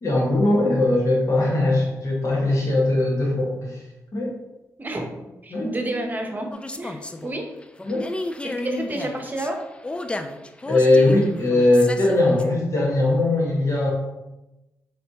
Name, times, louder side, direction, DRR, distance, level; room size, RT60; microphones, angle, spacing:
voice 1, 0.0-3.8 4.1-4.3 5.5-5.7 7.8-8.1 10.7-13.9, left 2 dB, 55° left, -3 dB, 1.5 m, -20 dB
voice 2, 4.8-5.1 5.4-6.5 6.8-7.4 8.4-9.6, right 1 dB, 30° right, 3 dB, 0.9 m, -29 dB
sound 1, 6.5-12.4, left 2 dB, 15° left, 0.3 m, -33 dB
4.2 x 3.3 x 2.8 m, 0.98 s
supercardioid pair, 50°, 6 cm